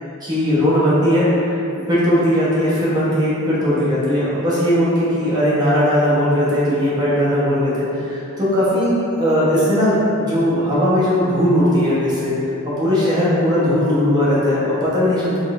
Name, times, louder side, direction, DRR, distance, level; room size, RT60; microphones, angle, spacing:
voice 1, 0.2-1.6 1.9-12.3 12.8-15.4, equal, 20° right, -10 dB, 0.9 m, -18 dB
3.7 x 3.3 x 2.4 m, 2.8 s
head